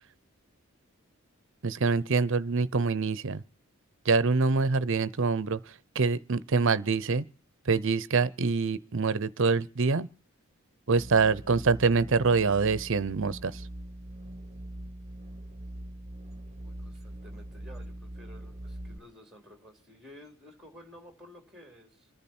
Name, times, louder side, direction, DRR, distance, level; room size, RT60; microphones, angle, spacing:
voice 1, 1.6-3.4 4.0-7.2 7.7-10.1 10.9-13.7, right 4 dB, 60° right, 0.7 m, -25 dB
sound 1, 10.9-19.0, right 1 dB, 30° right, 1.1 m, -42 dB
voice 2, 16.6-22.1, left 1 dB, ahead, 3.2 m, -53 dB
28.0 x 10.5 x 4.4 m
head